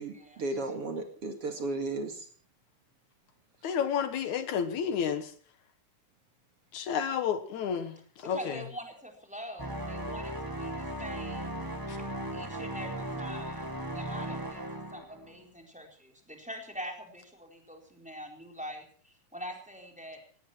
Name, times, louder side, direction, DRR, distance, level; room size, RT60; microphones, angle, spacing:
voice 1, 0.0-2.3, right 2 dB, 50° right, 5 dB, 3.0 m, -34 dB
voice 2, 3.6-5.3 6.7-8.6 11.9-12.0, left 7 dB, 70° left, 11 dB, 2.6 m, -31 dB
voice 3, 8.2-11.6 12.3-20.2, equal, ahead, 2 dB, 3.9 m, -44 dB
sound 1, 9.6-15.4, right 1 dB, 15° right, 0.6 m, -37 dB
18.0 x 17.5 x 4.5 m, 0.43 s
omnidirectional pair, 3.5 m